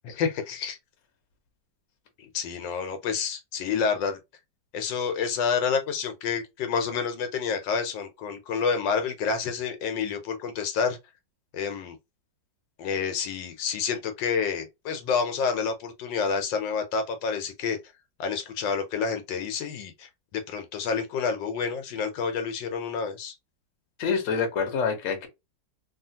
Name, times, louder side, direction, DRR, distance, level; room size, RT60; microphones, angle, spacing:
voice 1, 0.0-0.8 2.2-4.2 4.7-11.0 11.5-12.0 12.8-17.8 18.2-23.3, left 6 dB, 80° left, 1.4 m, -29 dB
voice 2, 24.0-25.3, left 5 dB, 55° left, 1.1 m, -26 dB
3.1 x 2.4 x 2.7 m
omnidirectional pair, 2.0 m